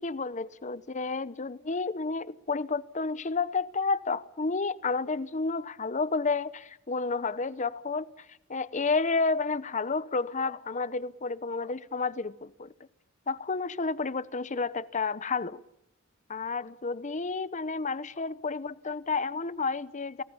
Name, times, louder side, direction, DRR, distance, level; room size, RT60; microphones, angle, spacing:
voice 1, 0.0-12.7 13.3-15.6 16.3-20.2, left 4 dB, 35° left, 0.9 m, -31 dB
30.0 x 19.0 x 7.2 m
head